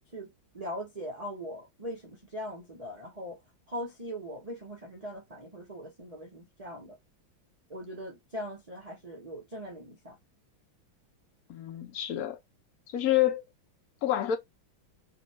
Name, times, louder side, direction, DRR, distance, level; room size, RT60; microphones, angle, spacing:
voice 1, 0.1-3.4 3.7-7.0 7.7-10.2, equal, 40° right, 0.5 m, -40 dB
voice 2, 11.5-12.4 12.9-13.4 14.0-14.4, left 12 dB, 60° left, 1.0 m, -27 dB
3.0 x 2.7 x 4.0 m
omnidirectional pair, 2.2 m